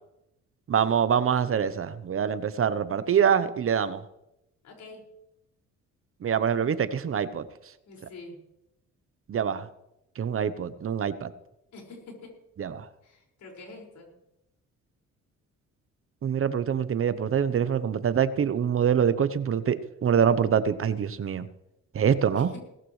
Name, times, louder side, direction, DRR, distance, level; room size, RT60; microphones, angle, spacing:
voice 1, 0.7-4.0 6.2-7.4 9.3-9.6 10.2-11.3 12.6-12.8 16.2-21.5 21.9-22.5, right 8 dB, 45° right, 13 dB, 0.9 m, -25 dB
voice 2, 4.6-5.0 7.9-8.4 11.7-12.3 13.0-14.1 22.3-22.6, left 3 dB, 70° left, 0 dB, 5.7 m, -46 dB
18.5 x 15.0 x 3.3 m, 0.86 s
cardioid pair, 90°, 30 cm